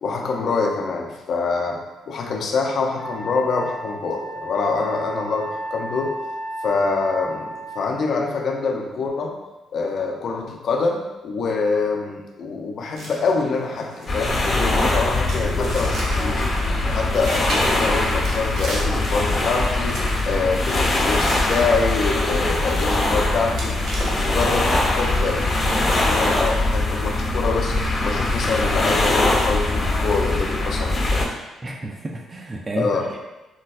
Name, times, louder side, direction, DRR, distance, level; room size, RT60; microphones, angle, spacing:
voice 1, 0.0-1.8 2.1-6.1 6.6-9.4 9.7-16.4 16.8-20.0 20.2-23.7 24.1-27.8 28.0-31.3 32.7-33.1, left 4 dB, 60° left, 0 dB, 0.5 m, -25 dB
Wind instrument woodwind instrument, 3.0-7.9, right 1 dB, ahead, 0.8 m, -33 dB
sound 1, 12.9-24.7, right 1 dB, 70° right, 0.7 m, -36 dB
sound 2, 14.1-31.2, left 2 dB, 35° left, 1.1 m, -22 dB
voice 2, 31.6-33.2, right 2 dB, 30° right, 0 dB, 0.4 m, -31 dB
4.3 x 2.2 x 2.3 m, 1.1 s
cardioid pair, 90°, 0 cm